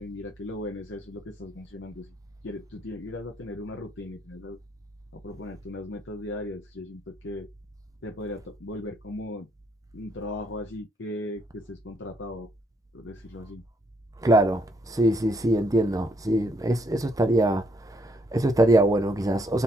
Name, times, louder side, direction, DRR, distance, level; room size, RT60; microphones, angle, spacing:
voice 1, 0.0-2.1 2.4-4.6 5.1-7.5 8.0-9.5 9.9-12.5 12.9-13.6, left 1 dB, 65° left, 0.8 m, -37 dB
voice 2, 14.2-19.6, right 1 dB, 20° right, 0.5 m, -23 dB
3.8 x 2.6 x 4.2 m
head